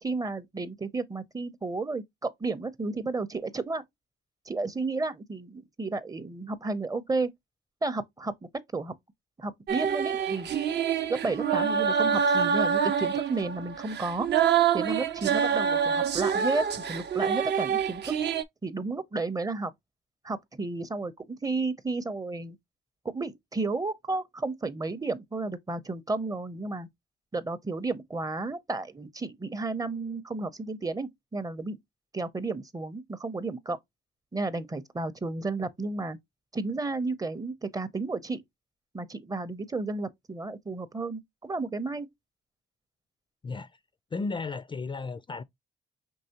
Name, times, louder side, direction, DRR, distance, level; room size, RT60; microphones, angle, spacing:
voice 1, 0.0-3.8 4.5-7.3 7.8-8.3 8.7-8.9 9.4-10.5 11.1-14.3 14.7-16.6 16.9-18.1 18.6-19.7 20.2-22.6 23.0-26.9 27.3-31.8 32.1-33.8 34.3-36.2 36.5-38.4 38.9-42.1, right 3 dB, 20° right, 0.6 m, -32 dB
sound 1, 9.7-18.4, right 7 dB, 60° right, 0.6 m, -26 dB
voice 2, 44.1-45.4, left 4 dB, 25° left, 0.4 m, -34 dB
5.3 x 3.0 x 2.8 m
cardioid pair, 90°, 20 cm